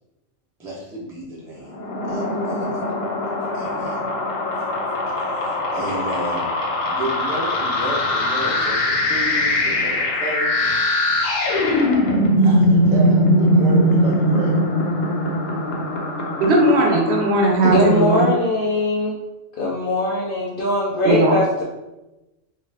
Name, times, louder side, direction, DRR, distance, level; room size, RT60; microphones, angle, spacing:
voice 1, 0.6-1.7 2.1-2.8 3.5-4.0 5.2-6.5 6.9-10.5 11.6-14.6, right 1 dB, 5° right, -5 dB, 0.3 m, -32 dB
sound 1, 1.7-18.0, left 1 dB, 90° left, 1.0 m, -21 dB
voice 2, 16.4-18.3 21.0-21.4, right 1 dB, 65° right, 0 dB, 0.8 m, -17 dB
voice 3, 17.6-19.2 19.6-21.6, left 1 dB, 60° left, -3 dB, 0.6 m, -21 dB
2.4 x 2.4 x 3.3 m, 1.0 s
omnidirectional pair, 1.3 m